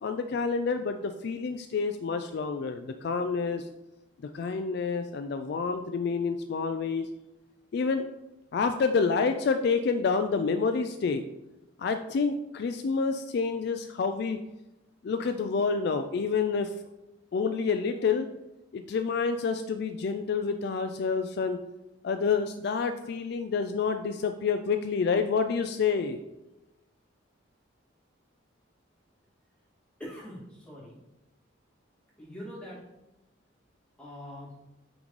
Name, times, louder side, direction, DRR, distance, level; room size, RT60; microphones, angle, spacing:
voice 1, 0.0-3.7 4.3-7.1 7.7-8.1 8.5-11.2 11.8-14.4 15.0-16.7 17.3-18.3 18.7-21.6 22.0-26.2, left 5 dB, 55° left, 8 dB, 0.3 m, -28 dB
voice 2, 30.0-31.0 32.2-32.8 34.0-34.6, equal, 5° left, -9 dB, 2.2 m, -43 dB
8.5 x 3.8 x 3.2 m, 0.95 s
head